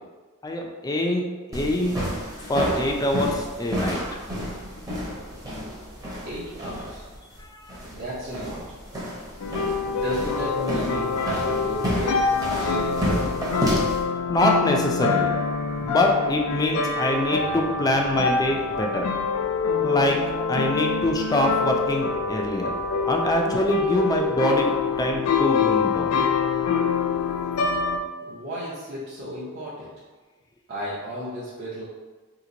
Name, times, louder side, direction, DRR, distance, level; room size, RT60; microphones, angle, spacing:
voice 1, 0.4-1.2 1.5-2.0 2.4-4.2 7.4-7.8 14.3-15.3 15.8-19.0 19.8-20.2 20.5-22.7 23.1-26.3, left 1 dB, 15° left, 1 dB, 0.4 m, -24 dB
sound 1, 1.5-14.0, equal, 15° right, 0.7 m, -31 dB
voice 2, 6.2-7.1 7.9-8.6 9.9-13.3 28.3-29.9 30.7-31.8, equal, 50° right, -10 dB, 0.7 m, -33 dB
sound 2, 9.4-28.0, left 5 dB, 85° left, 0.4 m, -25 dB
2.9 x 2.5 x 3.8 m, 1.4 s
head